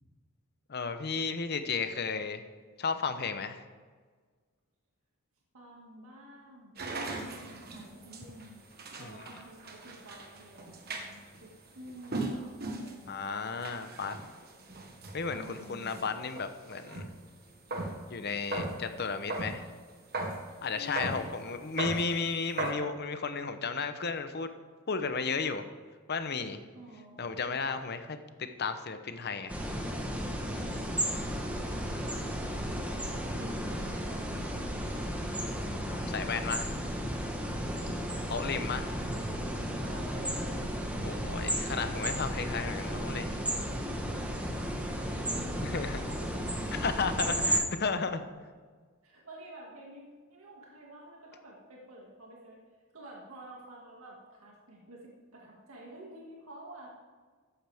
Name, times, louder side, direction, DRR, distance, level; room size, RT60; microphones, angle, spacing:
voice 1, 0.7-2.4 2.8-3.6 9.0-9.2 13.1-14.1 15.1-17.1 18.1-19.7 20.6-24.5 24.9-25.6 26.1-26.6 27.2-28.2 28.6-29.6 35.5-36.7 38.3-38.9 41.0-43.4 45.6-46.0 46.7-48.2, left 5 dB, 50° left, 9 dB, 0.8 m, -34 dB
voice 2, 5.5-8.6 9.0-13.3 15.3-16.0 20.7-21.6 26.7-27.6 30.9-34.7 37.5-39.4 39.8-40.8 44.0-46.5 47.2-47.5 49.0-52.6 52.9-56.9, right 1 dB, 80° right, -3 dB, 2.2 m, -50 dB
sound 1, 6.8-17.2 17.5-18.1 18.4-19.6 20.1-20.4 21.0-21.2 21.5-22.1 22.6-22.7, right 2 dB, 45° right, 1.4 m, -38 dB
sound 2, 29.5-47.6, equal, 5° right, 1.2 m, -34 dB
14.0 x 10.0 x 3.6 m, 1.5 s
head